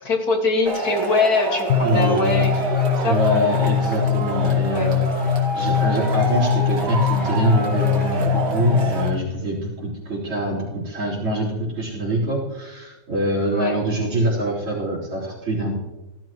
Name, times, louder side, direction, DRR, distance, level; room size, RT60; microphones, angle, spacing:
voice 1, 0.0-3.2 4.7-4.9 13.5-13.8, left 2 dB, 45° left, 1 dB, 2.4 m, -22 dB
Male speech man speaking / Shout / Clapping, 0.7-9.1, right 2 dB, 50° right, 2.4 m, -27 dB
sound 1, 1.7-9.3, left 9 dB, 70° left, 0.8 m, -22 dB
voice 2, 1.8-2.4 3.0-5.1 5.5-15.7, right 1 dB, 75° right, -10 dB, 5.0 m, -24 dB
18.0 x 13.0 x 3.1 m, 1.0 s
omnidirectional pair, 2.4 m